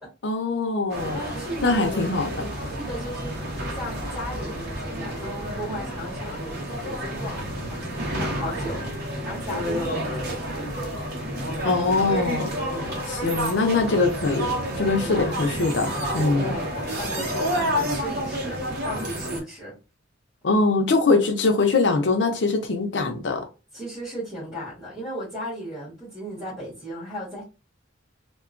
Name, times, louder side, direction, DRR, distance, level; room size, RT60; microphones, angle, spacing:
voice 1, 0.2-1.2 1.6-2.3 11.6-12.5 13.1-16.5 20.4-23.4, left 3 dB, 65° left, 0.5 m, -22 dB
sound 1, 0.9-19.4, equal, 55° right, 0.8 m, -30 dB
voice 2, 1.1-2.1 2.7-8.9 9.2-10.7 12.7-13.0 14.8-15.2 16.4-19.8 23.7-27.4, equal, 5° right, 1.4 m, -36 dB
2.8 x 2.2 x 2.4 m
head